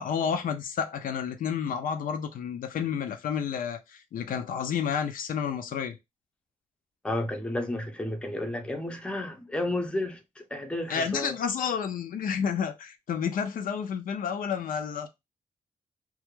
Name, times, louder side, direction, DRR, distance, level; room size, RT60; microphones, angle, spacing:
voice 1, 0.0-6.0 10.9-15.1, left 7 dB, 75° left, 0.4 m, -30 dB
voice 2, 7.0-11.4, left 1 dB, 5° left, 0.5 m, -32 dB
2.3 x 2.1 x 2.9 m
cardioid pair, 100°, 14 cm